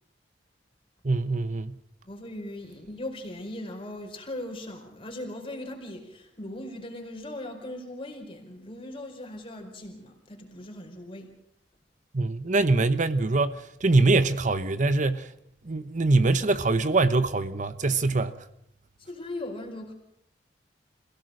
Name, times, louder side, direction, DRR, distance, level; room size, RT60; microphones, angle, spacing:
voice 1, 1.0-1.8 12.1-15.3 15.6-18.4, right 3 dB, 45° right, 0.9 m, -23 dB
voice 2, 2.0-11.3 19.0-19.9, left 1 dB, 30° left, 4.8 m, -39 dB
27.0 x 17.0 x 6.5 m
head